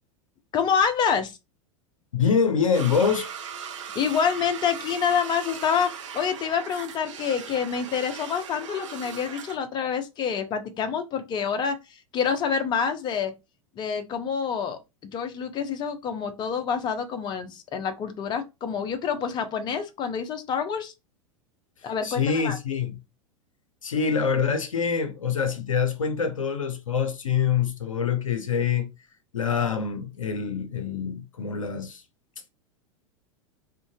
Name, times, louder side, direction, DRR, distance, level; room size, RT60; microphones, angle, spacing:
voice 1, 0.5-1.4 4.0-5.9 6.1-13.3 13.8-14.8 15.1-20.9 21.8-22.6, left 7 dB, 25° left, 0.5 m, -27 dB
voice 2, 2.1-3.3 22.0-23.0 23.8-28.9 29.3-32.0, left 6 dB, 80° left, 0.5 m, -25 dB
sound 1, 2.7-9.6, right 7 dB, 65° right, 0.5 m, -39 dB
2.5 x 2.1 x 2.6 m
figure-of-eight pair, 90°, 17 cm